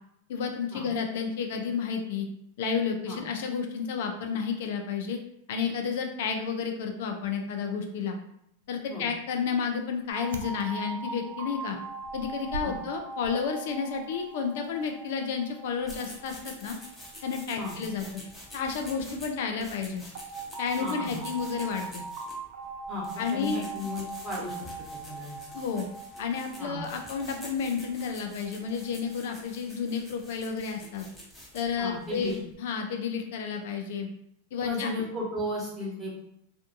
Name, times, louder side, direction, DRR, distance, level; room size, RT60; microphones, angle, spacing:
voice 1, 0.3-2.3 2.6-5.2 5.5-8.2 8.7-11.8 12.1-16.8 17.2-18.1 18.5-20.0 20.6-22.0 23.2-23.6 25.5-25.9 26.2-31.1 31.5-34.1 34.5-34.9, left 6 dB, 65° left, 4 dB, 0.4 m, -31 dB
sound 1, 8.6-16.7, right 1 dB, 75° right, 0.3 m, -47 dB
sound 2, 10.1-18.9 20.1-29.3, right 4 dB, 50° right, 0.8 m, -41 dB
sound 3, 15.8-32.5, left 1 dB, 10° left, 0.9 m, -48 dB
voice 2, 20.8-21.2 22.9-24.6 25.1-25.4 26.6-26.8 31.8-32.4 34.6-36.1, left 2 dB, 20° right, -5 dB, 1.1 m, -34 dB
2.5 x 2.3 x 2.5 m, 0.74 s
hypercardioid pair, 105°, 0 cm